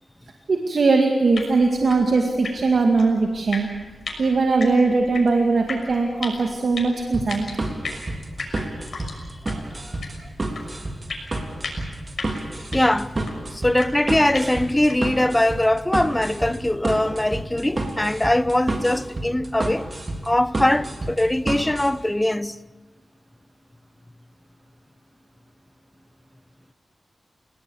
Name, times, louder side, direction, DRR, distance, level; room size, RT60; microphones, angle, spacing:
voice 1, 0.5-3.7 4.2-7.5, right 3 dB, 60° right, 2.1 m, -20 dB
sound 1, 1.3-15.2, left 3 dB, 65° left, 6.2 m, -38 dB
sound 2, 7.1-21.9, right 2 dB, 35° right, 3.5 m, -29 dB
voice 2, 9.5-10.0 12.7-19.9 20.2-22.6, left 1 dB, 10° left, 0.7 m, -22 dB
30.0 x 19.0 x 7.2 m
wide cardioid pair, 110°, 0 cm